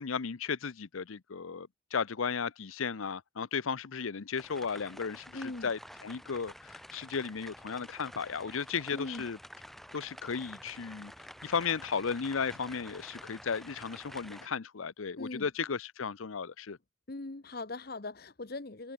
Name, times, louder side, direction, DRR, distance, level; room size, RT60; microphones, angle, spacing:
voice 1, 0.0-9.4 9.9-11.1 11.4-16.8, left 6 dB, 90° left, 0.7 m, -35 dB
sound 1, 4.4-14.5, equal, ahead, 1.5 m, -49 dB
voice 2, 5.3-5.7 8.9-9.3 15.2-15.5 17.1-18.9, left 2 dB, 50° left, 1.0 m, -40 dB
head